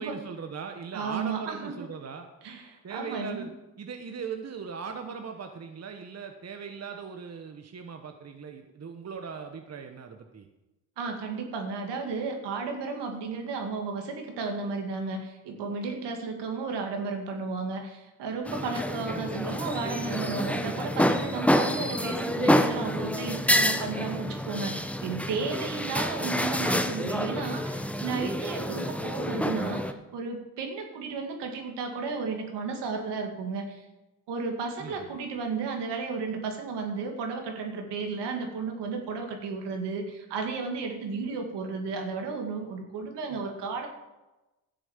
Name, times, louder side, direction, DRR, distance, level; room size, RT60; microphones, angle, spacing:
voice 1, 0.0-2.3 2.8-3.5 3.8-10.5 34.8-35.2, right 6 dB, 40° right, 6 dB, 1.2 m, -39 dB
voice 2, 0.9-1.9 2.4-3.5 11.0-33.8 34.3-43.9, right 4 dB, 75° right, 3 dB, 2.4 m, -33 dB
sound 1, 18.5-29.9, left 1 dB, 5° left, 0.9 m, -28 dB
12.5 x 7.1 x 7.4 m, 1.0 s
supercardioid pair, 70°, 41 cm